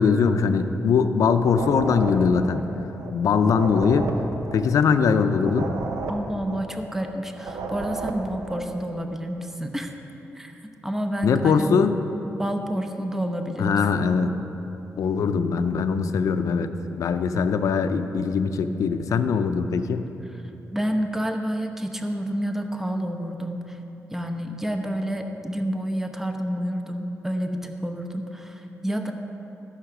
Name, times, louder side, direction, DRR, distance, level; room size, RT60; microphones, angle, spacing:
voice 1, 0.0-2.6 3.1-4.1 4.5-5.7 11.2-12.0 13.6-14.3 15.0-16.7 17.0-20.0, left 5 dB, 80° left, 9 dB, 0.5 m, -21 dB
sound 1, 1.4-8.7, right 3 dB, 85° right, 0.8 m, -34 dB
voice 2, 6.1-9.9 10.3-10.5 10.8-11.9 12.4-13.8 20.3-20.4 20.7-23.8 24.1-29.1, equal, 5° right, 4 dB, 0.8 m, -29 dB
13.0 x 5.7 x 6.1 m, 3.0 s
cardioid pair, 85°, 6 cm